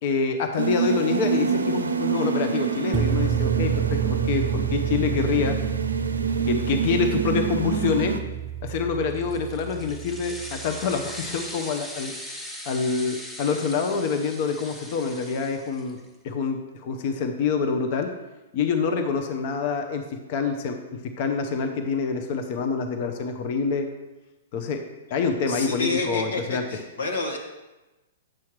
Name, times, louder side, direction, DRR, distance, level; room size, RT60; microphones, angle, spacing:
voice 1, 0.0-5.6 6.5-8.1 8.6-12.1 12.6-16.0 16.2-18.1 18.5-20.0 20.3-20.8 21.2-23.9 24.5-24.8 25.1-26.6, left 5 dB, 50° left, 6 dB, 0.8 m, -26 dB
sound 1, 0.6-8.2, right 6 dB, 90° right, 0.5 m, -27 dB
sound 2, 2.9-11.1, right 10 dB, 25° right, 0.4 m, -29 dB
sound 3, 9.1-16.1, left 1 dB, 10° left, 0.9 m, -39 dB
voice 2, 25.5-27.4, left 3 dB, 70° left, 1 dB, 1.5 m, -29 dB
8.9 x 5.7 x 3.2 m, 1.1 s
hypercardioid pair, 115°, 0 cm